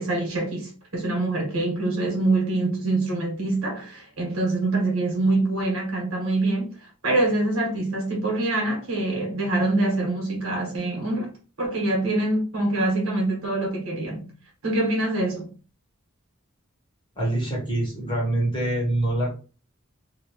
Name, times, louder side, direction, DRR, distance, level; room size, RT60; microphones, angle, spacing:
voice 1, 0.0-6.7 7.0-11.3 11.6-14.3 14.6-15.5, right 2 dB, 80° right, 1.5 m, -25 dB
voice 2, 17.1-19.4, right 1 dB, 25° left, 1.3 m, -25 dB
2.8 x 2.8 x 3.0 m
head